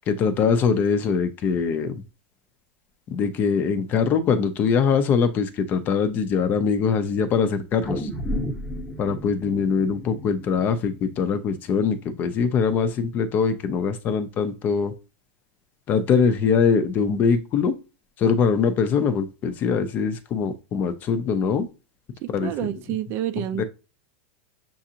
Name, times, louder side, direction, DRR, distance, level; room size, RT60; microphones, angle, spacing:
voice 1, 0.1-2.0 3.1-8.1 9.0-14.9 15.9-17.8 18.2-21.7 22.3-22.5 23.6-23.7, left 6 dB, 30° left, 0.5 m, -22 dB
sound 1, 7.8-12.3 12.7-12.8, equal, 10° left, 0.9 m, -33 dB
voice 2, 22.2-23.6, right 12 dB, 40° right, 0.4 m, -29 dB
6.9 x 2.5 x 2.8 m
supercardioid pair, 150°, 6 cm